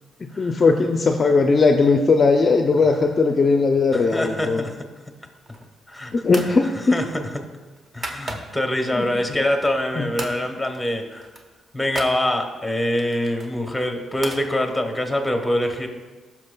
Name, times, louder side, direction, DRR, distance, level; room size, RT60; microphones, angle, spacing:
voice 1, 0.4-4.6 6.1-7.0 8.9-9.1 10.0-10.3, left 4 dB, 35° left, 4 dB, 0.5 m, -18 dB
voice 2, 3.9-4.8 5.9-6.1 6.9-7.3 7.9-11.3 11.7-15.9, left 1 dB, ahead, 4 dB, 1.0 m, -24 dB
sound 1, 5.4-5.8 6.3-6.6 6.9-8.7 9.2-9.9 10.2-10.4 10.7-10.9 11.1-12.2 13.0-14.5, right 2 dB, 35° right, 0.9 m, -36 dB
16.0 x 6.1 x 2.2 m, 1.3 s
cardioid pair, 125°, 0 cm